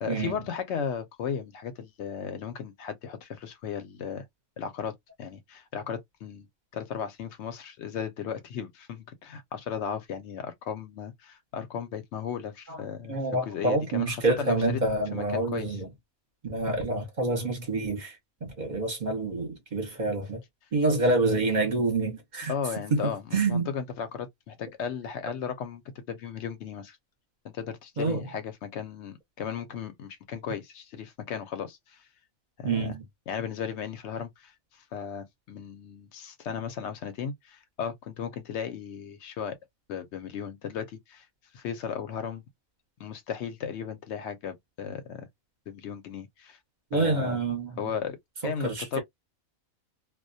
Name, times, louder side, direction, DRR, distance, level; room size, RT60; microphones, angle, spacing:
voice 1, 0.0-4.3 4.6-6.5 6.7-14.8 15.1-15.8 22.5-27.0 27.4-32.0 32.6-32.9 33.3-39.6 39.9-41.3 41.5-42.4 43.0-45.3 45.7-46.6 46.9-47.4 47.8-49.0, left 7 dB, 65° left, 0.8 m, -36 dB
voice 2, 13.1-15.9 16.4-20.4 20.7-22.5 22.9-23.7 28.0-28.2 32.6-33.0 46.9-47.9 48.6-49.0, right 2 dB, 40° right, 0.8 m, -27 dB
2.2 x 2.1 x 2.5 m
omnidirectional pair, 1.4 m